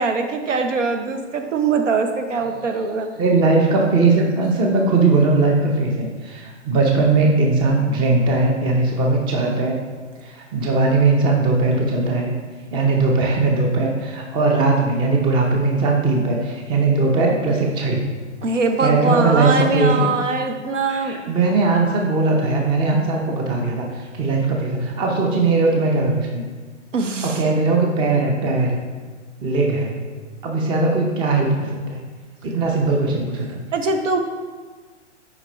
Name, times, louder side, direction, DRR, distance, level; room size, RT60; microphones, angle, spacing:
voice 1, 0.0-3.1 18.4-21.2 26.9-27.4 33.7-34.2, right 4 dB, 85° right, 5 dB, 0.8 m, -22 dB
voice 2, 3.2-9.8 10.2-12.3 12.7-18.0 18.8-20.1 20.9-26.4 27.2-28.8 29.4-29.9 30.4-32.0 32.4-33.6, right 3 dB, 15° right, 0 dB, 0.5 m, -19 dB
5.8 x 5.1 x 3.3 m, 1.5 s
hypercardioid pair, 125°, 36 cm